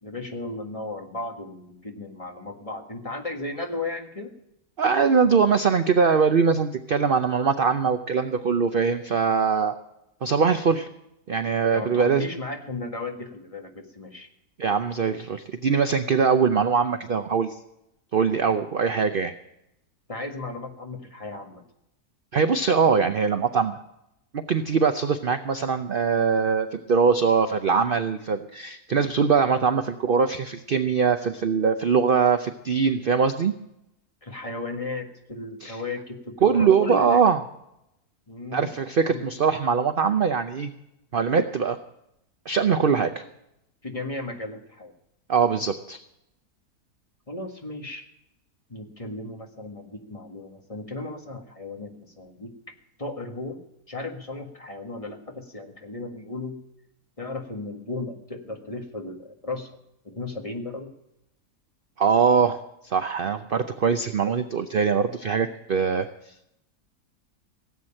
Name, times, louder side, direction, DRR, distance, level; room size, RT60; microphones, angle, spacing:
voice 1, 0.0-4.3 11.7-14.3 20.1-21.6 34.2-37.2 38.3-38.7 39.0-39.4 43.8-44.9 47.3-48.1 48.7-52.5 53.0-53.6 53.9-56.6 57.2-59.7 60.0-60.9, left 2 dB, 20° left, 3 dB, 1.7 m, -35 dB
voice 2, 4.8-9.8 10.2-10.9 11.3-12.3 14.6-17.6 18.1-19.3 22.3-23.8 24.3-33.5 35.6-35.8 36.4-37.4 38.5-40.7 41.1-41.8 42.5-43.2 45.3-46.0 62.0-62.6 62.8-66.1, right 5 dB, 50° right, 9 dB, 0.7 m, -22 dB
17.5 x 8.1 x 8.9 m, 0.83 s
omnidirectional pair, 1.7 m